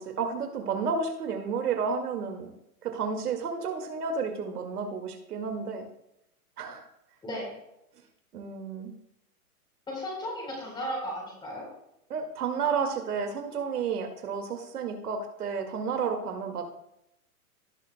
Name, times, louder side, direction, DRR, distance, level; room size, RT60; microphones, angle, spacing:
voice 1, 0.0-2.5 2.8-5.9 6.6-6.9 8.3-8.9 12.1-16.6, right 5 dB, 75° right, 4 dB, 2.2 m, -31 dB
voice 2, 7.2-7.6 9.9-11.7, equal, 10° left, -2 dB, 3.8 m, -35 dB
18.0 x 7.4 x 2.2 m, 0.81 s
hypercardioid pair, 155°, 46 cm